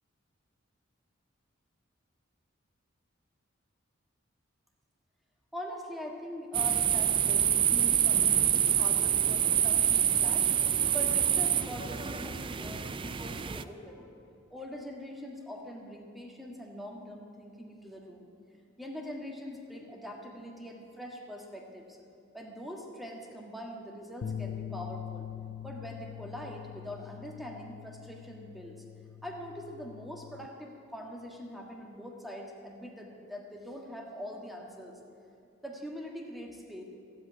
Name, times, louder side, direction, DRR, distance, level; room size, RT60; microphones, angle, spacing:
voice 1, 5.5-10.5 10.9-14.1 14.5-18.3 18.8-22.0 22.3-25.3 25.6-28.8 29.2-35.0 35.6-36.8, equal, ahead, 0 dB, 1.6 m, -43 dB
sound 1, 6.5-13.6, right 9 dB, 25° right, 0.4 m, -26 dB
sound 2, 24.2-30.5, left 9 dB, 45° left, 0.3 m, -43 dB
15.0 x 8.6 x 9.3 m, 2.6 s
head